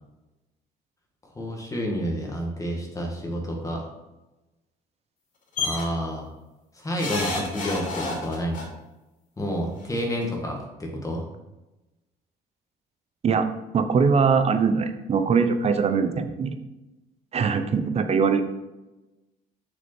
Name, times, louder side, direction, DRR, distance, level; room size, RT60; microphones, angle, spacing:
voice 1, 1.3-3.9 5.6-6.3 6.7-8.7 9.4-11.2, equal, 20° left, 0 dB, 1.8 m, -29 dB
sound 1, 5.6-5.8 7.0-8.6 9.8-9.9 10.2-10.3, left 3 dB, 50° left, 2.9 m, -29 dB
voice 2, 13.7-16.6 17.3-18.4, right 5 dB, 40° right, 9 dB, 0.8 m, -22 dB
6.6 x 6.1 x 4.4 m, 1.0 s
cardioid pair, 110°, 17 cm